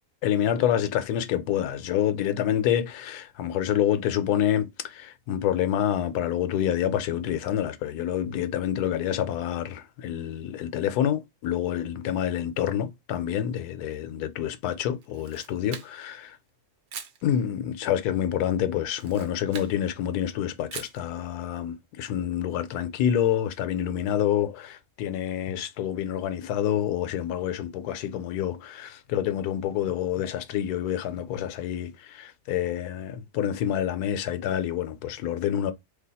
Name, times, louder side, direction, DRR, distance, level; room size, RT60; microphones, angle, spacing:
voice 1, 0.2-16.4 17.2-35.7, left 10 dB, 85° left, 1.1 m, -27 dB
Camera, 15.0-16.2 16.9-17.2 18.9-19.8 20.7-21.0, right 7 dB, 60° right, 0.8 m, -41 dB
2.8 x 2.3 x 3.9 m
omnidirectional pair, 1.6 m